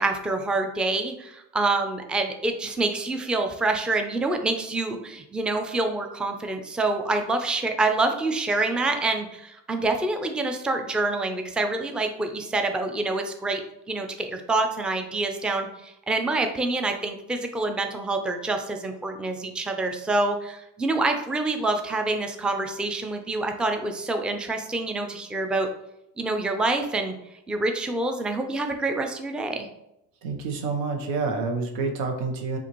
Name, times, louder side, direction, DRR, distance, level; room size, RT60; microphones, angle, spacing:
voice 1, 0.0-13.6 13.9-25.7 26.2-27.1 27.5-29.7, right 2 dB, ahead, 5 dB, 0.4 m, -26 dB
voice 2, 30.2-32.6, right 4 dB, 85° right, 3 dB, 0.9 m, -28 dB
5.7 x 2.6 x 2.9 m, 0.84 s
supercardioid pair, 80°, 41 cm